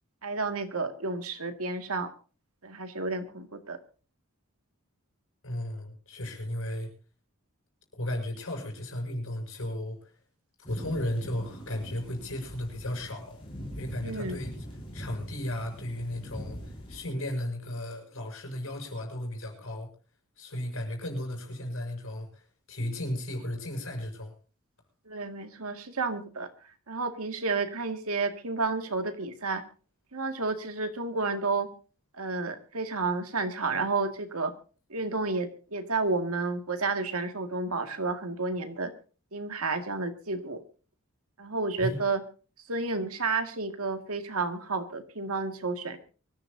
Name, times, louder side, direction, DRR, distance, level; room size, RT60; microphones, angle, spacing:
voice 1, 0.2-2.1 2.6-3.8 14.0-14.4 25.1-26.5 26.9-29.6 30.1-31.7 32.1-34.5 34.9-38.9 39.3-40.6 41.4-42.2 42.7-46.0, right 3 dB, 75° right, 7 dB, 2.1 m, -31 dB
voice 2, 5.4-6.9 7.9-10.1 10.7-13.4 13.7-14.6 14.9-19.9 20.4-24.3 41.8-42.0, left 1 dB, 65° left, 3 dB, 6.4 m, -35 dB
sound 1, 10.6-17.0, equal, 25° left, 5.9 m, -42 dB
24.5 x 14.5 x 2.7 m, 0.37 s
head